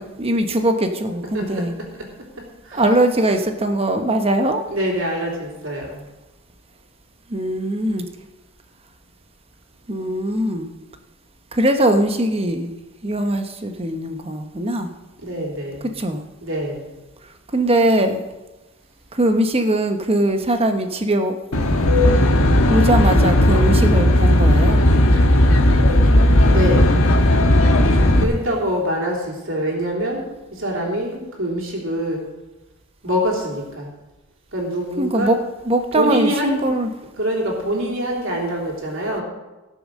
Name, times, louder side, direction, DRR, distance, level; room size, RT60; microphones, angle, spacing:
voice 1, 0.0-1.7 2.7-4.7 7.3-8.1 9.9-10.7 11.5-12.7 13.0-14.9 16.0-16.2 17.5-18.2 19.1-21.7 22.7-24.8 35.0-35.4 35.6-36.9, right 1 dB, 25° right, 6 dB, 1.0 m, -21 dB
voice 2, 1.3-1.7 1.9-2.1 2.6-2.8 4.7-6.0 15.2-15.9 16.4-16.9 26.5-27.0 28.2-30.2 30.5-32.3 33.0-33.9 34.5-35.3 36.0-36.7 37.2-39.2, equal, 60° right, -1 dB, 3.3 m, -24 dB
Aircraft, 21.5-28.2, left 1 dB, 70° left, 1.4 m, -15 dB
17.5 x 7.0 x 6.4 m, 1.1 s
head